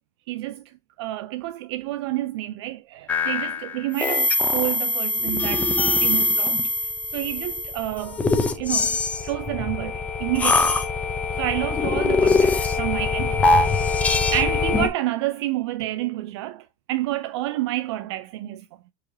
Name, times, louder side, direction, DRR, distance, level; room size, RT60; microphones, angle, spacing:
voice 1, 0.3-5.7 6.0-6.6 7.1-8.2 8.5-10.7 11.4-13.9 14.3-18.6, right 15 dB, 65° right, 0.4 m, -29 dB
sound 1, 3.1-14.9, left 3 dB, 10° left, 0.4 m, -23 dB
4.8 x 3.1 x 2.6 m
supercardioid pair, 165°, 15 cm